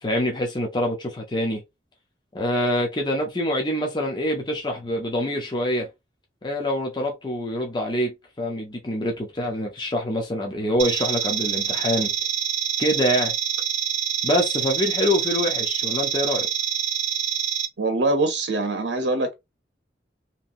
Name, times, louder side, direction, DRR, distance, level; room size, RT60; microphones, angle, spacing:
voice 1, 0.0-1.6 2.3-5.9 6.4-12.1 12.8-13.3 14.2-16.5, left 1 dB, 25° left, 0.6 m, -25 dB
sound 1, 10.8-17.7, right 8 dB, 40° right, 0.6 m, -26 dB
voice 2, 17.8-19.3, right 2 dB, 85° right, 0.7 m, -23 dB
2.9 x 2.7 x 2.5 m
head